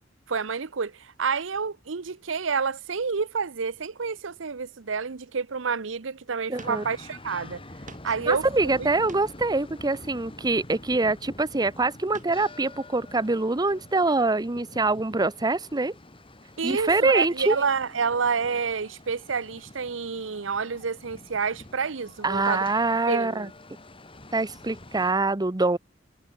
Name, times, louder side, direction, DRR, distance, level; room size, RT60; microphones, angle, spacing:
voice 1, 0.3-7.6 8.0-8.5 8.8-8.9 16.6-22.7 23.1-23.5, right 5 dB, 85° right, 0.8 m, -29 dB
sound 1, 6.5-25.1, left 1 dB, 30° left, 3.9 m, -46 dB
voice 2, 6.5-6.8 8.3-15.9 16.6-17.6 22.2-23.5 24.3-25.8, right 3 dB, 20° right, 0.8 m, -24 dB
sound 2, 6.6-6.8 7.2-7.3 7.9-8.2 8.8-9.5 10.6-11.2 12.1-12.4 12.8-13.0, right 3 dB, 45° right, 3.8 m, -48 dB
head